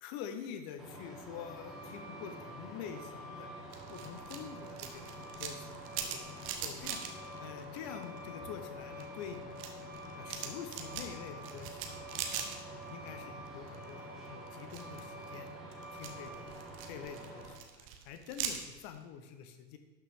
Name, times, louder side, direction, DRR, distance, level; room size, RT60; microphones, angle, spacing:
voice 1, 0.0-3.5 3.9-5.6 6.0-6.1 6.6-9.8 10.2-11.9 12.3-12.5 12.9-15.5 15.9-19.8, left 8 dB, 20° left, 8 dB, 0.4 m, -46 dB
Truck, 0.8-17.5, equal, ahead, 1.8 m, -47 dB
sound 1, 3.7-8.3 8.6-13.1 13.4-14.0 14.5-19.0, right 8 dB, 25° right, 0.8 m, -42 dB
11.5 x 6.1 x 3.5 m, 1.3 s
figure-of-eight pair, 100°, 50 cm